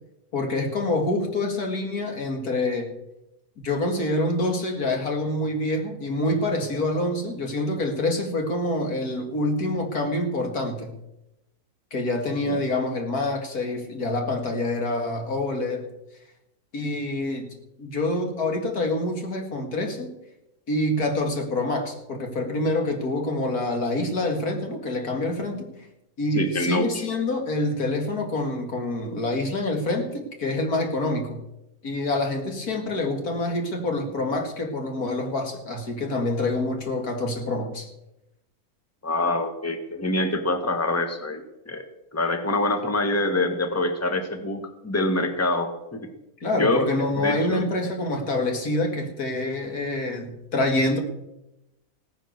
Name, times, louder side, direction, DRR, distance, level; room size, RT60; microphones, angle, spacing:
voice 1, 0.3-2.9 3.6-10.9 11.9-15.9 16.7-17.5 17.8-20.1 20.7-25.7 26.2-31.4 31.8-37.9 46.4-51.0, left 2 dB, 85° left, 3 dB, 2.8 m, -26 dB
voice 2, 26.3-27.0 39.0-41.8 42.1-46.1 46.6-46.9 47.2-47.7, left 2 dB, 10° left, 6 dB, 1.4 m, -25 dB
17.0 x 10.0 x 6.6 m, 0.89 s
omnidirectional pair, 1.6 m